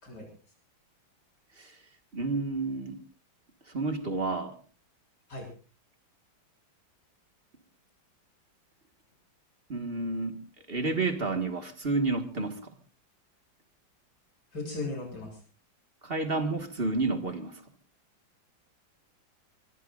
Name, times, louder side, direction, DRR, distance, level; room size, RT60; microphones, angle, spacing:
voice 1, 2.1-3.0 3.7-4.6 9.7-10.4 10.7-12.8 16.0-17.6, right 3 dB, 30° right, 7 dB, 1.8 m, -30 dB
voice 2, 14.5-15.4, left 2 dB, 60° left, 3 dB, 7.8 m, -36 dB
24.5 x 20.5 x 2.5 m, 0.35 s
omnidirectional pair, 2.1 m